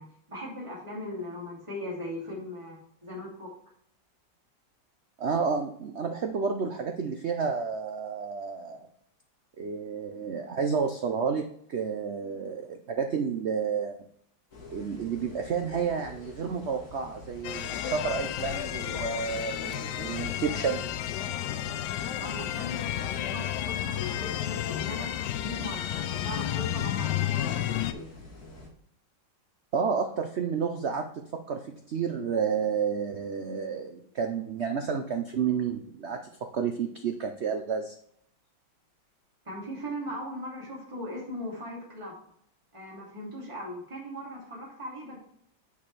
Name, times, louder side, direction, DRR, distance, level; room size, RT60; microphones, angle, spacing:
voice 1, 0.0-3.5 22.2-28.1 39.4-42.2 42.7-45.2, left 1 dB, 15° right, -5 dB, 2.8 m, -39 dB
voice 2, 5.2-8.8 9.6-14.0 14.7-20.8 29.7-36.2 36.5-37.9, right 6 dB, 85° right, 5 dB, 0.5 m, -30 dB
sound 1, 14.5-28.7, left 2 dB, 45° left, 1.9 m, -47 dB
sound 2, 17.4-27.9, left 12 dB, 75° left, 1.0 m, -32 dB
8.5 x 6.5 x 3.3 m, 0.68 s
omnidirectional pair, 2.1 m